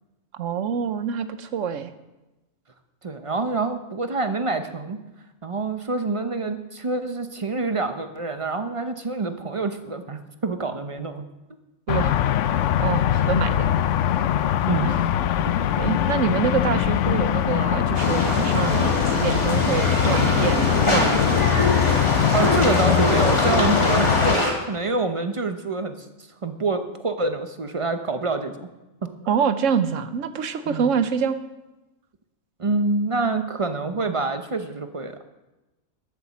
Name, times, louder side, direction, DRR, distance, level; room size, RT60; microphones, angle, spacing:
voice 1, 0.4-1.9 11.9-12.1 12.8-13.7 14.8-15.0 15.8-21.4 29.3-31.4, right 7 dB, 65° right, 11 dB, 1.0 m, -26 dB
voice 2, 3.0-5.0 5.4-11.2 14.5-14.9 15.4-15.6 22.3-26.1 26.4-28.7 30.7-30.9 32.6-35.2, right 3 dB, 35° right, 8 dB, 0.6 m, -26 dB
sound 1, 11.9-24.4, left 10 dB, 70° left, 0.9 m, -22 dB
sound 2, 17.9-24.5, left 1 dB, 20° left, 2.2 m, -23 dB
12.0 x 6.8 x 7.1 m, 1.1 s
omnidirectional pair, 1.4 m